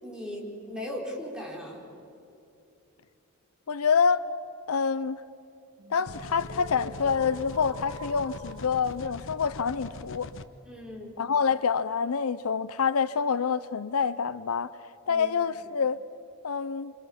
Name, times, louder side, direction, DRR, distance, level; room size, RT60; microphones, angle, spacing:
voice 1, 0.0-1.9 10.6-11.2 15.1-15.6, left 1 dB, 5° right, 4.7 m, -38 dB
voice 2, 3.7-4.3 4.7-5.2 5.9-10.3 11.2-14.7 15.1-16.0 16.4-16.9, left 6 dB, 80° left, 0.6 m, -27 dB
sound 1, 5.8-11.8, right 2 dB, 55° right, 2.1 m, -49 dB
sound 2, 6.1-10.4, left 3 dB, 65° left, 1.0 m, -42 dB
27.5 x 26.5 x 7.3 m
head